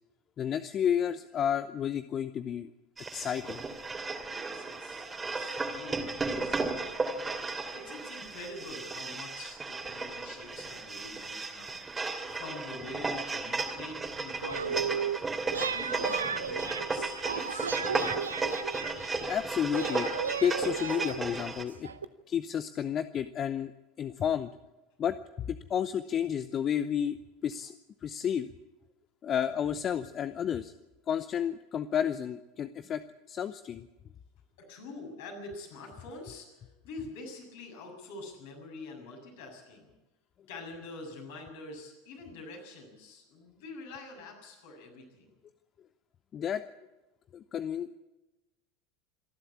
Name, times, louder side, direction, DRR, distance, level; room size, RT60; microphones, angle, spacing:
voice 1, 0.4-2.7 3.1-3.6 19.3-20.1 20.4-21.9 22.3-23.7 24.0-24.5 25.0-27.2 27.4-27.7 28.0-28.5 29.2-30.7 31.1-33.0 33.3-33.9 46.3-46.7 47.3-47.9, left 8 dB, 35° left, 13 dB, 0.7 m, -31 dB
sound 1, 3.0-21.6, right 3 dB, 20° right, 2.7 m, -35 dB
voice 2, 4.3-7.3 7.7-11.8 12.3-15.3 15.5-18.4 21.9-22.0 34.6-39.9 40.5-45.3, left 3 dB, 60° left, 1 dB, 7.0 m, -46 dB
sound 2, 14.4-15.2 15.5-19.4 19.7-22.0, right 7 dB, 80° right, 0.7 m, -34 dB
27.0 x 11.5 x 8.5 m, 1.0 s
figure-of-eight pair, 75°, 0 cm